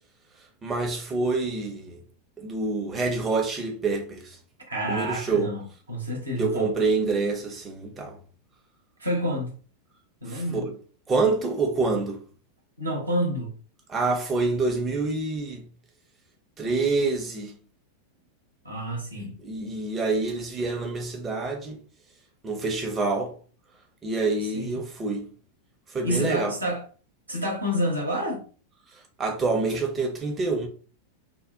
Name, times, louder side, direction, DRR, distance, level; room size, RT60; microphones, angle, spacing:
voice 1, 0.6-2.0 2.4-4.4 4.9-5.5 6.4-8.2 10.3-10.7 11.1-12.2 13.9-15.6 16.6-17.5 19.4-21.8 22.4-23.3 24.0-25.3 25.9-26.5 29.2-30.7, right 3 dB, 20° right, 0.5 m, -26 dB
voice 2, 4.7-6.7 9.0-9.5 10.2-10.6 12.8-13.5 18.6-19.3 24.5-24.7 26.0-26.8 27.3-28.4, equal, 80° right, 0.8 m, -28 dB
2.6 x 2.0 x 2.3 m
figure-of-eight pair, 90°, 0 cm